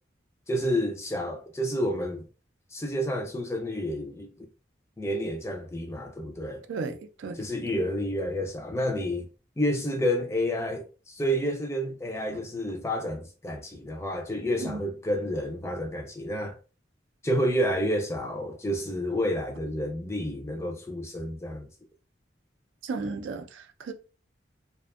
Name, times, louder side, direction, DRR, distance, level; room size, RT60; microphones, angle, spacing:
voice 1, 0.5-2.2 2.7-4.5 5.0-6.6 7.3-9.3 9.6-16.6 17.2-21.7, equal, 15° left, 0.3 m, -29 dB
voice 2, 6.7-7.5 14.6-14.8 22.8-23.9, right 4 dB, 80° right, 0.4 m, -34 dB
2.5 x 2.2 x 2.3 m
head